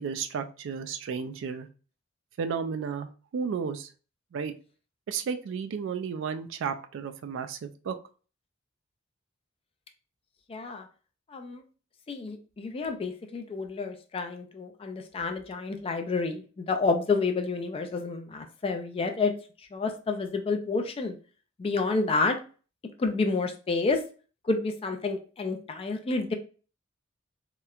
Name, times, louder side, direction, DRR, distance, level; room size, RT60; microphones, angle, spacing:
voice 1, 0.0-1.7 2.4-3.9 4.3-4.5 5.1-7.9, right 6 dB, 65° right, 8 dB, 0.3 m, -33 dB
voice 2, 10.5-10.9 11.3-11.6 12.1-19.3 19.7-21.2 21.6-22.4 23.0-24.0 24.4-26.3, left 3 dB, 30° left, 6 dB, 0.3 m, -29 dB
2.9 x 2.1 x 2.3 m, 0.37 s
head